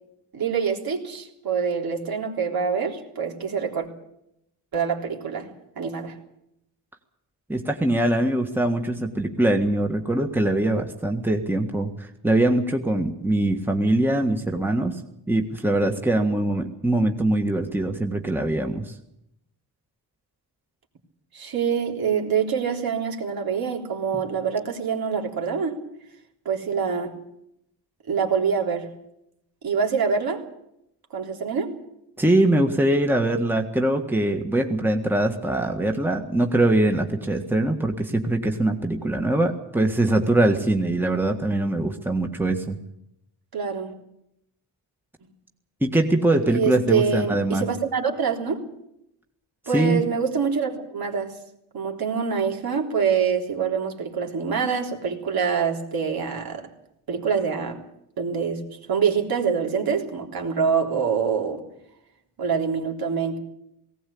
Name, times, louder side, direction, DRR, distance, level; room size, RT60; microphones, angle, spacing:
voice 1, 0.3-3.9 4.7-6.1 21.3-25.8 26.5-27.1 28.1-28.9 29.6-30.4 31.1-31.7 43.5-43.9 46.5-48.6 49.7-51.3 51.7-56.7 57.1-57.8 58.2-58.6 58.9-61.6 62.4-63.4, right 6 dB, 60° right, 1 dB, 3.7 m, -25 dB
voice 2, 7.5-15.0 15.3-18.9 32.2-42.8 45.8-47.7 49.7-50.0, right 1 dB, 5° right, 3 dB, 1.7 m, -22 dB
19.0 x 17.5 x 8.6 m, 0.80 s
wide cardioid pair, 130°, 41 cm